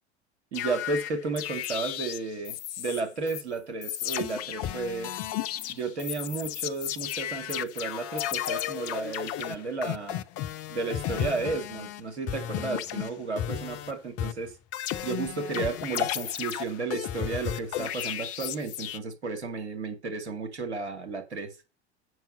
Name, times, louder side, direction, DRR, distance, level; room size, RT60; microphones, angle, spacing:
sound 1, 0.5-3.0 3.3-3.4 3.8-12.0 12.3-13.9 14.2-19.0, left 12 dB, 45° left, 0.8 m, -33 dB
voice 1, 0.5-5.1 5.7-10.2 10.7-14.5 15.0-21.5, right 4 dB, 80° right, 2.2 m, -33 dB
7.9 x 5.9 x 6.3 m
figure-of-eight pair, 75°, 34 cm